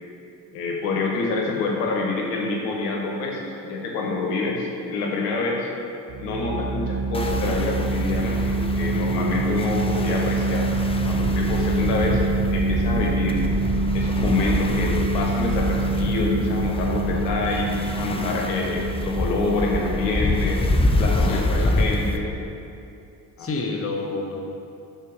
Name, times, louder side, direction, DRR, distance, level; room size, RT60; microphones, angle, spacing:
voice 1, 0.5-5.7 6.2-10.7 11.0-12.2 12.5-13.4 13.9-20.6 21.0-22.3 23.4-23.5, left 3 dB, 80° left, -1 dB, 1.1 m, -26 dB
sound 1, 6.1-22.3, right 3 dB, 50° right, 1.1 m, -26 dB
sound 2, 7.1-22.2, left 1 dB, 10° left, 0.6 m, -27 dB
voice 2, 21.2-21.9 23.4-24.4, left 3 dB, 30° left, 1 dB, 1.1 m, -29 dB
6.6 x 4.3 x 6.5 m, 2.7 s
hypercardioid pair, 55°, 47 cm